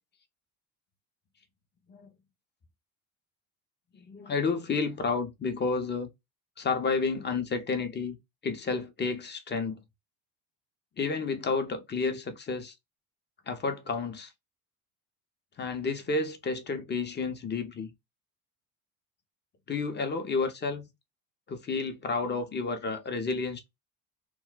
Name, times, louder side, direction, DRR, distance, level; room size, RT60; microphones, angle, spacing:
voice 1, 3.9-6.1 6.6-8.2 8.4-9.8 11.0-12.7 13.5-14.3 15.6-17.9 19.7-20.9 21.5-23.7, left 4 dB, 25° left, 0.7 m, -31 dB
2.3 x 2.1 x 3.8 m
hypercardioid pair, 75°, 43 cm